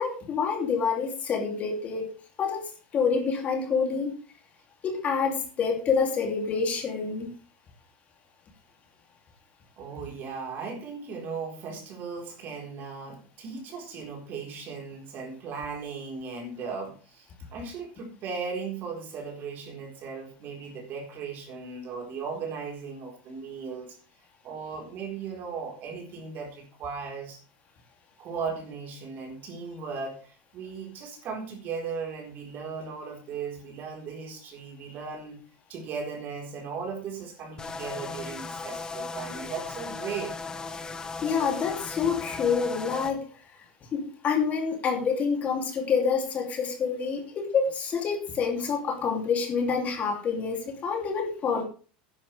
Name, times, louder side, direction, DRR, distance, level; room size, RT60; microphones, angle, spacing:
voice 1, 0.0-2.1 2.4-4.2 4.8-7.3 41.2-43.3 43.9-51.6, left 5 dB, 30° left, 2.9 m, -27 dB
voice 2, 9.8-24.0 24.4-27.4 28.2-35.4 35.7-40.4, right 5 dB, 40° right, 4.2 m, -37 dB
sound 1, 37.6-43.1, left 4 dB, 15° left, 0.9 m, -37 dB
12.5 x 10.5 x 3.4 m
supercardioid pair, 135°, 5 cm